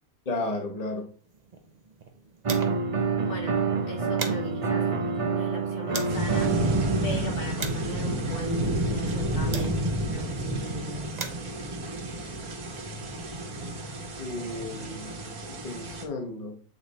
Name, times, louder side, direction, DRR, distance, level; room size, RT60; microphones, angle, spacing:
voice 1, 0.2-1.1 14.2-16.6, left 2 dB, 30° left, 1.0 m, -34 dB
sound 1, 1.2-3.0 3.3-3.4 3.7-6.3 6.9-10.1 10.8-13.0, right 4 dB, 35° right, 0.7 m, -41 dB
sound 2, 2.4-7.5, right 5 dB, 60° right, 0.3 m, -27 dB
voice 2, 3.3-4.9 5.3-6.5 7.0-9.8 10.1-11.1, equal, 75° left, 2.6 m, -37 dB
sound 3, 6.1-16.0, right 1 dB, 75° right, 1.9 m, -30 dB
8.2 x 3.3 x 4.1 m
omnidirectional pair, 1.6 m